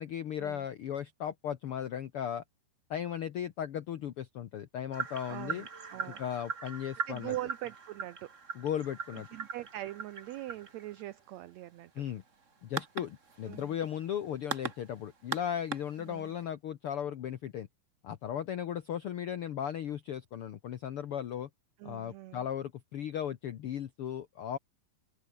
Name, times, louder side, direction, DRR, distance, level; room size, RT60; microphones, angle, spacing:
voice 1, 0.0-2.4 2.9-5.7 6.0-7.3 8.5-9.3 11.9-12.2 12.6-17.7 18.0-21.5 21.8-24.6, left 9 dB, 70° left, 1.3 m, -36 dB
sound 1, 4.9-16.4, right 5 dB, 30° right, 1.6 m, -41 dB
voice 2, 5.3-6.2 7.1-8.3 9.1-11.9 13.4-13.8 16.1-16.3 21.8-22.5, right 15 dB, 85° right, 1.5 m, -42 dB
open air
omnidirectional pair, 4.0 m